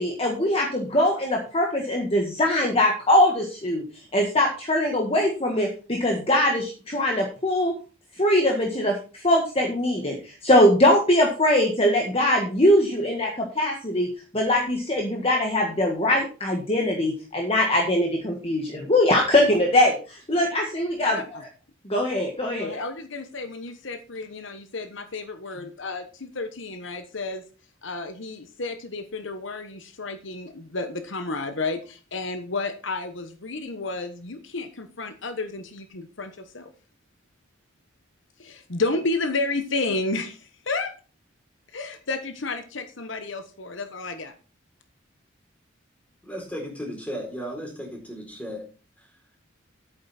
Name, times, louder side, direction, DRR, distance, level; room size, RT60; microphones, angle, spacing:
voice 1, 0.0-3.8 4.1-7.7 8.2-14.1 14.3-21.2 21.9-22.8, left 1 dB, 30° left, 1 dB, 1.6 m, -22 dB
voice 2, 21.0-21.4 22.6-27.4 27.8-36.7 38.4-40.9 41.7-44.3, left 3 dB, 70° left, 9 dB, 1.1 m, -31 dB
voice 3, 46.2-48.7 49.0-49.1, equal, 5° left, 0 dB, 4.1 m, -35 dB
10.5 x 8.9 x 4.3 m, 0.36 s
head